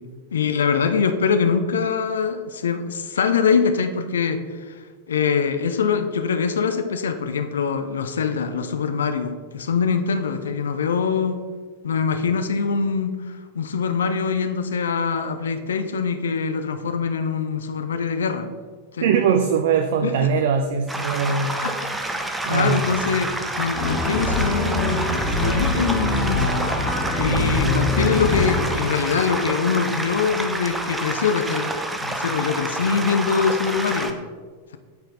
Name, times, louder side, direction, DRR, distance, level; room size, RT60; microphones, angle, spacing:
voice 1, 0.3-11.4 11.8-18.5 18.9-19.1 20.0-20.3 21.6-21.7 22.5-26.5 27.2-31.7 32.0-34.2, left 6 dB, 65° left, 8 dB, 0.4 m, -23 dB
voice 2, 19.0-21.6 22.5-22.9, right 6 dB, 55° right, 7 dB, 0.4 m, -21 dB
sound 1, 20.9-34.1, right 1 dB, 10° right, 0.6 m, -28 dB
sound 2, 23.7-28.8, left 2 dB, 30° left, 2.0 m, -24 dB
9.1 x 4.5 x 3.3 m, 1.6 s
figure-of-eight pair, 90°, 0 cm